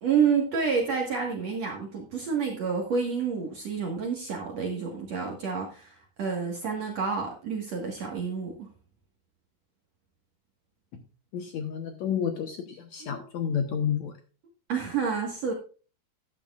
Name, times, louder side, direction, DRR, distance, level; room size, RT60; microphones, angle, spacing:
voice 1, 0.0-8.7 13.0-13.2 14.7-15.5, right 6 dB, 55° right, 0 dB, 2.2 m, -29 dB
voice 2, 11.3-14.1, left 8 dB, 70° left, 5 dB, 1.7 m, -30 dB
13.0 x 10.5 x 2.4 m, 0.37 s
omnidirectional pair, 4.6 m